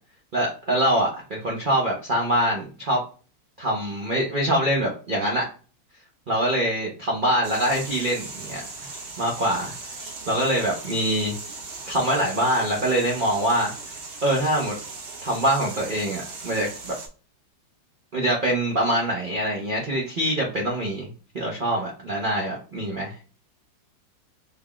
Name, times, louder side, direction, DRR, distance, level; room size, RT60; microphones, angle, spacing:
voice 1, 0.3-3.0 3.6-5.5 6.3-8.6 9.2-9.7 10.3-11.3 11.9-13.7 14.2-14.8 15.2-16.9 18.1-21.1 21.3-23.2, right 1 dB, 75° right, -2 dB, 0.4 m, -24 dB
sound 1, 7.4-17.1, right 3 dB, 50° right, 0.8 m, -38 dB
3.4 x 2.3 x 3.5 m, 0.38 s
omnidirectional pair, 2.0 m